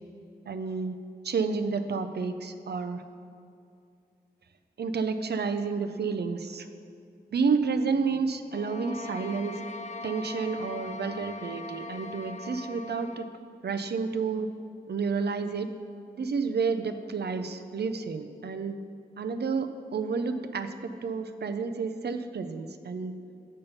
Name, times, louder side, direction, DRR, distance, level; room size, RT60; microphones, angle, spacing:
voice 1, 0.5-1.0 1.2-3.0 4.8-6.7 7.3-9.6 10.0-13.3 13.6-14.5 14.9-15.7 16.2-18.8 19.2-23.1, right 5 dB, 75° right, 8 dB, 0.5 m, -30 dB
sound 1, 8.5-13.3, left 3 dB, 45° left, 0.4 m, -41 dB
7.1 x 5.4 x 5.5 m, 2.4 s
wide cardioid pair, 55°, 17 cm